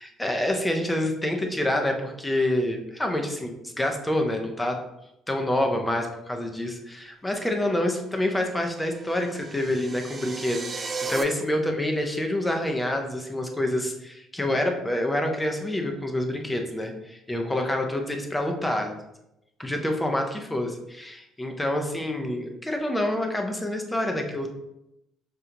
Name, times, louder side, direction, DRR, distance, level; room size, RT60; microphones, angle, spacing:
voice 1, 0.0-4.8 5.3-18.9 19.6-24.5, left 1 dB, 10° left, 3 dB, 0.6 m, -27 dB
sound 1, 8.7-11.2, right 4 dB, 30° right, 0.4 m, -35 dB
5.1 x 2.3 x 2.9 m, 0.85 s
cardioid pair, 95°, 0 cm